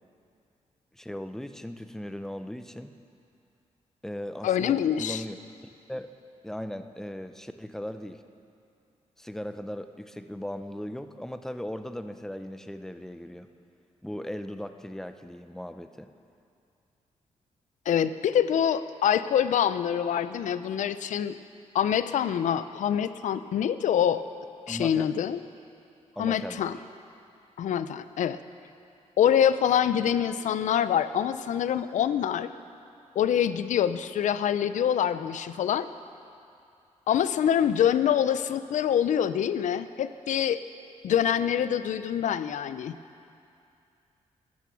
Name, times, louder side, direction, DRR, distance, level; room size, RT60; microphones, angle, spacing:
voice 1, 0.9-2.9 4.0-5.4 5.9-6.1 6.4-8.2 9.2-13.5 14.0-16.1 24.7-25.1 26.2-26.7, left 1 dB, 5° left, 9 dB, 0.5 m, -38 dB
voice 2, 4.4-5.2 17.9-21.4 21.7-24.2 24.7-25.4 26.2-26.8 27.6-28.4 29.2-32.5 33.2-35.9 37.1-40.6 41.0-43.0, left 9 dB, 75° left, 13 dB, 0.5 m, -25 dB
13.0 x 10.5 x 7.1 m, 2.5 s
wide cardioid pair, 150°, 13 cm